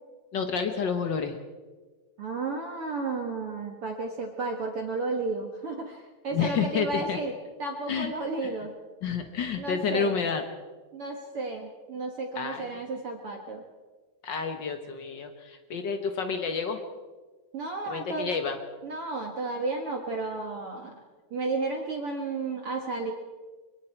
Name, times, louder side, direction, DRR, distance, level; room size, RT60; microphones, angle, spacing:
voice 1, 0.3-1.4 6.3-7.2 7.9-8.1 9.0-10.4 12.4-12.6 14.2-16.8 17.9-18.6, left 6 dB, 90° left, 6 dB, 0.9 m, -29 dB
voice 2, 2.2-8.7 9.6-10.2 10.9-13.6 17.5-18.3 18.8-21.0 21.3-23.1, right 3 dB, 50° right, 2 dB, 2.0 m, -33 dB
24.5 x 23.5 x 4.5 m, 1.3 s
omnidirectional pair, 3.9 m